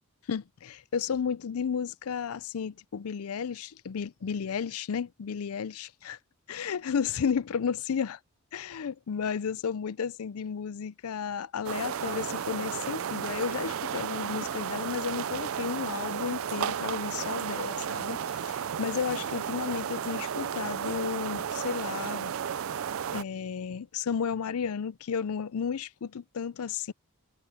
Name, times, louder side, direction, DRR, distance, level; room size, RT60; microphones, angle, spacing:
voice 1, 0.3-6.2 6.5-8.2 8.5-22.3 23.1-26.9, left 6 dB, 75° left, 0.5 m, -33 dB
sound 1, 11.6-23.2, right 8 dB, 65° right, 0.4 m, -33 dB
head